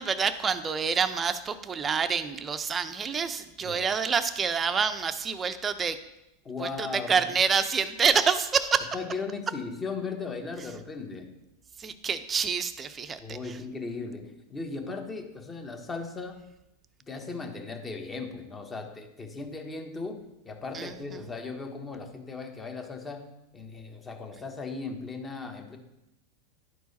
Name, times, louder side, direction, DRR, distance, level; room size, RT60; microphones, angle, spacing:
voice 1, 0.0-6.0 6.6-8.9 11.8-13.2 20.7-20.9, right 6 dB, 25° right, 10 dB, 0.6 m, -27 dB
voice 2, 6.4-7.4 8.9-11.3 13.2-16.4 17.1-25.8, left 4 dB, 20° left, 4 dB, 1.2 m, -37 dB
11.0 x 4.6 x 4.1 m, 0.89 s
hypercardioid pair, 120°, 0 cm